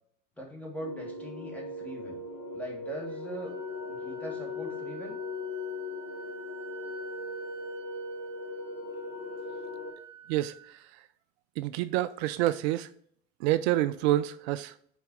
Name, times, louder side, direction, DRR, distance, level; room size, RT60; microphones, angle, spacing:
voice 1, 0.4-2.2 2.5-3.5 3.9-5.2, right 1 dB, 5° left, 1.8 m, -41 dB
sound 1, 0.8-9.9, left 3 dB, 40° left, 2.1 m, -39 dB
Wind instrument woodwind instrument, 3.1-10.8, right 6 dB, 10° right, 2.0 m, -49 dB
voice 2, 10.3-10.8 11.6-12.9 13.4-14.7, right 14 dB, 55° right, 0.4 m, -28 dB
5.7 x 4.2 x 4.5 m
hypercardioid pair, 85°, 40 cm